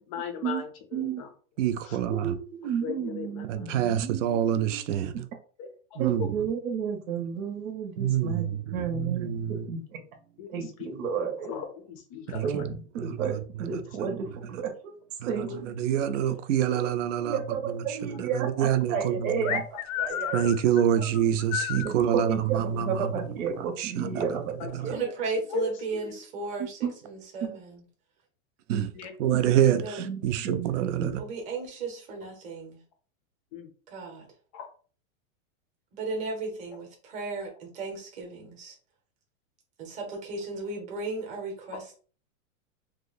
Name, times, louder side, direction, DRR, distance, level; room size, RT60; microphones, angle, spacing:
voice 1, 0.1-1.3 1.8-2.0 2.8-3.8 5.6-6.3 9.0-9.1 9.6-9.7 10.4-10.9 11.1-12.6 15.4-15.6 16.0-16.1 20.1-20.2 24.0-24.3 24.6-25.0 25.5-25.7 26.0-26.1 29.0-29.1 33.5-33.7 34.5-34.7 41.7-41.8, left 7 dB, 25° left, 0.4 m, -38 dB
voice 2, 0.9-1.2 2.1-4.8 6.0-9.4 9.7-9.8 10.5-11.5 12.4-14.3 14.6-14.9 15.3-16.0 16.7-16.9 17.2-19.6 19.9-20.5 21.8-25.0 26.8-26.9 27.4-27.6 28.7-28.9 29.3-29.4 29.7-31.1, right 7 dB, 85° right, 0.9 m, -32 dB
voice 3, 1.6-2.3 3.5-5.2 6.0-6.3 8.0-9.7 12.3-12.4 13.0-13.2 14.1-14.2 15.2-17.4 18.1-19.6 20.3-23.1 23.8-24.2 24.7-25.0 28.7-28.8 29.2-31.2, right 10 dB, 65° right, 0.5 m, -26 dB
sound 1, 19.4-21.9, left 11 dB, 80° left, 0.5 m, -32 dB
voice 4, 24.9-27.8 29.8-30.1 31.2-32.8 33.9-34.3 35.9-38.7 39.8-41.8, right 3 dB, 20° right, 0.8 m, -35 dB
2.9 x 2.1 x 3.9 m
supercardioid pair, 165°, 40 cm